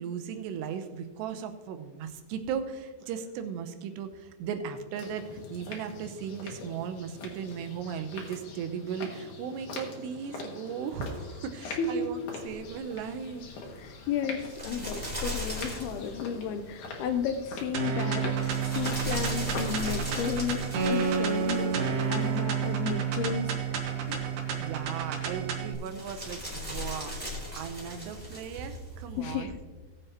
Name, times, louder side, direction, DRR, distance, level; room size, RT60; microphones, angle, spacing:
voice 1, 0.0-13.5 24.6-27.1 27.5-29.5, right 7 dB, 85° right, 7 dB, 3.0 m, -37 dB
sound 1, 4.9-20.4, left 3 dB, 60° left, 3.0 m, -43 dB
voice 2, 11.6-12.1 13.8-21.8 22.1-23.8 24.1-24.2 29.2-29.6, left 6 dB, 80° left, 8 dB, 2.4 m, -33 dB
sound 2, 12.4-29.4, left 1 dB, 10° right, 2.6 m, -40 dB
sound 3, 17.7-25.7, right 6 dB, 65° right, 2.2 m, -30 dB
18.0 x 7.9 x 3.0 m, 1.3 s
omnidirectional pair, 4.9 m